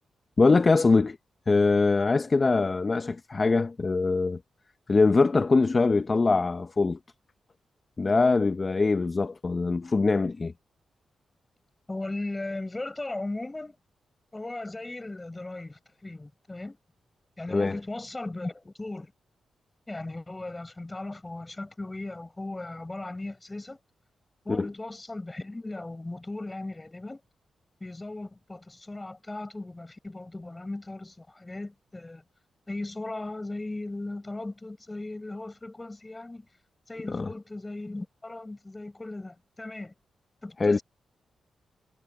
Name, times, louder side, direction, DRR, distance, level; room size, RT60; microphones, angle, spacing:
voice 1, 0.4-1.2 1.5-4.4 4.9-7.0 8.0-10.5 17.5-17.8 24.5-24.7 37.1-37.3 40.6-40.8, left 3 dB, 40° left, 0.9 m, -23 dB
voice 2, 11.9-13.7 14.3-16.8 17.4-19.1 19.9-23.8 24.4-27.2 27.8-32.2 32.7-36.5 36.9-39.9 40.4-40.8, left 2 dB, 25° left, 5.9 m, -37 dB
supercardioid pair, 50°, 0 cm